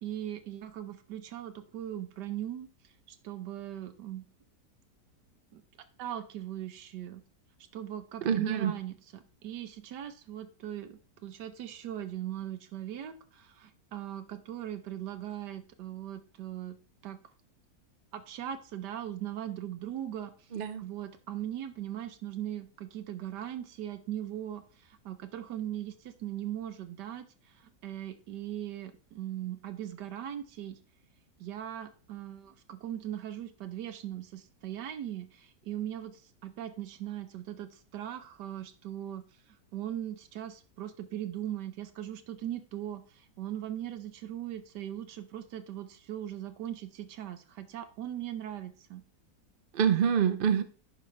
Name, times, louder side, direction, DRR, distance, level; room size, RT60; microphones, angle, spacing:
voice 1, 0.0-4.3 5.5-5.6 6.0-7.2 7.7-16.8 17.0-17.2 18.1-20.3 20.8-30.8 31.4-39.2 39.7-49.0, right 11 dB, 85° right, 1.4 m, -39 dB
voice 2, 8.2-8.7 20.5-20.8 49.7-50.6, right 8 dB, 55° right, 0.6 m, -26 dB
10.0 x 5.7 x 3.2 m
omnidirectional pair, 1.8 m